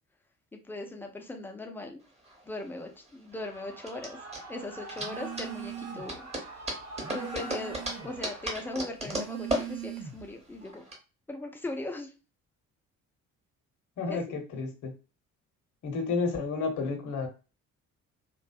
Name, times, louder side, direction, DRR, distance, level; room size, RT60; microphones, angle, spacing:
voice 1, 0.5-2.0 2.5-4.2 4.5-6.3 7.1-10.8 11.3-12.1 14.1-14.2, left 2 dB, 5° left, 3 dB, 0.4 m, -39 dB
sound 1, 2.0-11.0, right 1 dB, 15° right, 0.9 m, -37 dB
Shout / Cheering, 3.3-8.7, right 2 dB, 40° right, 1.0 m, -44 dB
Telephone, 5.0-6.2 6.6-8.2 8.9-10.4, right 10 dB, 70° right, 0.8 m, -41 dB
voice 2, 14.0-14.9 15.8-17.3, left 4 dB, 45° left, 4 dB, 0.8 m, -31 dB
2.6 x 2.1 x 2.4 m, 0.32 s
figure-of-eight pair, 45°, 41 cm